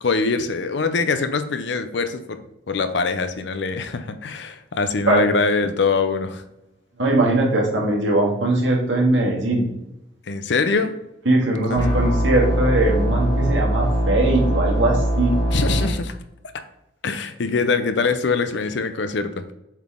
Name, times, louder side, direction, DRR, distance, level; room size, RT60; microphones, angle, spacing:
voice 1, 0.0-2.4 2.7-6.4 10.3-11.0 11.7-11.8 15.5-16.1 17.0-19.4, left 4 dB, 65° left, 9 dB, 0.6 m, -23 dB
voice 2, 7.0-9.7 11.3-15.4, right 2 dB, 80° right, -1 dB, 1.8 m, -20 dB
sound 1, 11.7-15.9, right 1 dB, 20° left, 1.6 m, -21 dB
7.2 x 4.0 x 3.7 m, 0.91 s
head